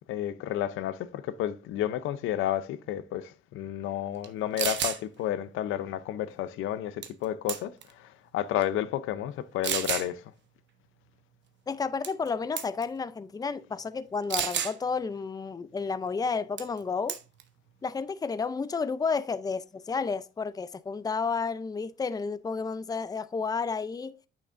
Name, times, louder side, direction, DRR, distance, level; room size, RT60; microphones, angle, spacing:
voice 1, 0.1-10.3, left 11 dB, 85° left, 0.6 m, -31 dB
sound 1, 4.2-4.3 4.6-5.0 7.0-7.2 7.5-7.9 8.6-8.7 9.6-10.1 12.0-12.3 12.6-12.8 14.3-14.8 16.6-16.8 17.1-17.4, right 9 dB, 65° right, 0.9 m, -30 dB
voice 2, 11.7-17.2 17.8-24.2, left 5 dB, 20° left, 0.5 m, -31 dB
8.6 x 6.2 x 2.5 m
cardioid pair, 90°, 20 cm